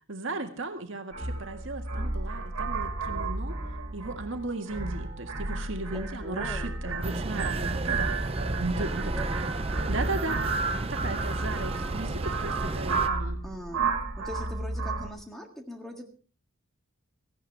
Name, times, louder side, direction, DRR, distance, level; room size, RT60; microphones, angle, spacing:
voice 1, 0.1-3.6 3.9-8.1 8.6-9.1 9.9-10.4 10.7-13.4, right 2 dB, 60° right, 5 dB, 1.8 m, -36 dB
sound 1, 1.1-15.1, right 3 dB, 90° right, 2.2 m, -32 dB
voice 2, 5.9-7.5 8.8-9.4 13.4-16.1, equal, ahead, 3 dB, 1.9 m, -42 dB
sound 2, 7.0-13.1, right 2 dB, 25° right, 0.6 m, -32 dB
17.5 x 15.0 x 3.5 m, 0.39 s
head